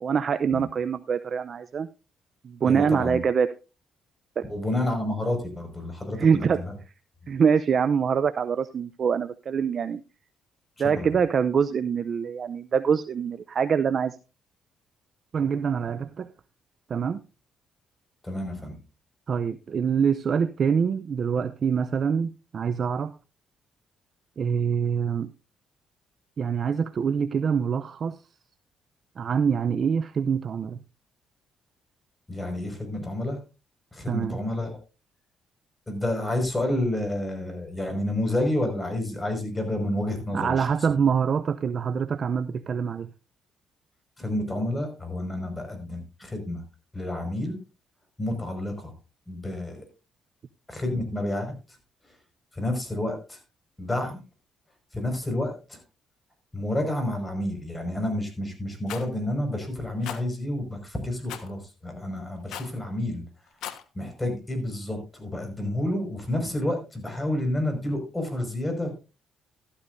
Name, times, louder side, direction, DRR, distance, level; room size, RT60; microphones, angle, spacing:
voice 1, 0.0-1.9 2.4-3.5 4.4-4.5 6.2-6.6 7.3-10.0 10.8-14.2 15.3-16.3 16.9-17.2 19.3-23.1 24.4-25.3 26.4-28.2 29.2-30.8 34.1-34.4 40.3-43.1, right 6 dB, 50° right, 12 dB, 0.6 m, -25 dB
voice 2, 2.6-3.2 4.5-6.8 10.9-11.1 18.2-18.8 32.3-33.4 33.9-34.8 35.9-40.7 44.2-46.6 46.9-47.6 48.2-48.9 49.3-49.9 50.7-51.5 52.5-53.4 53.8-54.2 54.9-55.8 56.5-63.2 63.9-68.9, left 1 dB, 15° left, 5 dB, 5.4 m, -29 dB
Rattle, 58.9-59.1 60.0-60.2 61.3-61.5 62.5-62.8 63.5-63.8, left 10 dB, 85° left, 1.3 m, -37 dB
13.5 x 13.0 x 2.6 m, 0.30 s
cardioid pair, 90°, 0 cm